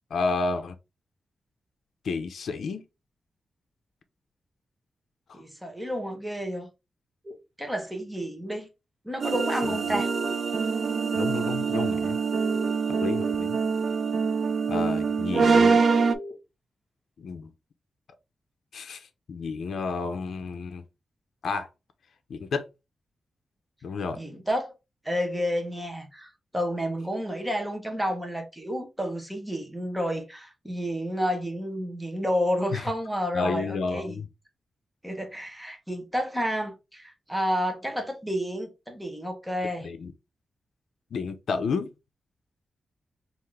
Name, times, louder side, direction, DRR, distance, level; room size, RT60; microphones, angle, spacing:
voice 1, 0.1-0.8 2.0-2.8 5.3-5.4 9.6-10.0 11.1-12.2 13.0-13.6 14.7-15.8 17.2-17.5 18.7-20.8 21.4-21.7 22.3-22.7 23.8-24.2 32.7-32.8 33.3-34.3 39.8-40.1 41.1-41.9, left 4 dB, 75° left, 0.5 m, -31 dB
voice 2, 5.3-6.7 7.6-8.7 9.0-10.1 24.2-24.7 25.0-34.1 35.0-39.9, equal, 5° right, 0.8 m, -30 dB
sound 1, 7.2-7.3 9.3-10.5 12.3-13.3 15.3-16.3, left 1 dB, 30° right, 1.3 m, -37 dB
sound 2, 9.2-16.2, right 5 dB, 55° right, 0.3 m, -24 dB
3.5 x 2.5 x 3.2 m
wide cardioid pair, 125°, 0 cm